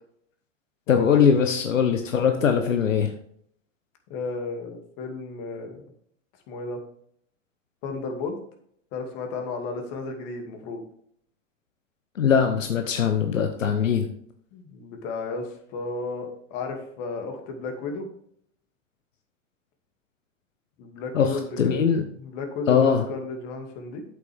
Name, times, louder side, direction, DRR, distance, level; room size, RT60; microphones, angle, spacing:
voice 1, 0.9-3.1 12.1-14.1 21.1-22.1 22.7-23.1, left 7 dB, 85° left, 6 dB, 1.0 m, -21 dB
voice 2, 4.1-5.8 6.5-6.8 7.8-8.4 8.9-10.8 14.5-18.1 20.8-21.8 22.2-24.0, left 4 dB, 50° left, 4 dB, 2.5 m, -33 dB
8.4 x 8.4 x 3.5 m, 0.66 s
hypercardioid pair, 105°, 38 cm